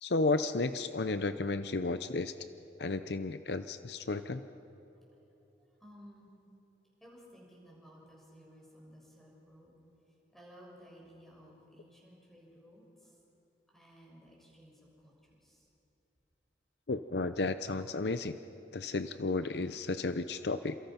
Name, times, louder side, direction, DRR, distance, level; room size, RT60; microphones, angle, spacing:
voice 1, 0.0-2.3 2.8-4.5 16.9-18.4 18.7-20.8, left 3 dB, 65° left, 10 dB, 0.7 m, -33 dB
voice 2, 5.8-6.3 7.0-9.7 10.3-13.2 13.7-15.7 20.3-20.4, equal, ahead, -3 dB, 6.7 m, -56 dB
29.0 x 27.5 x 5.9 m, 2.9 s
head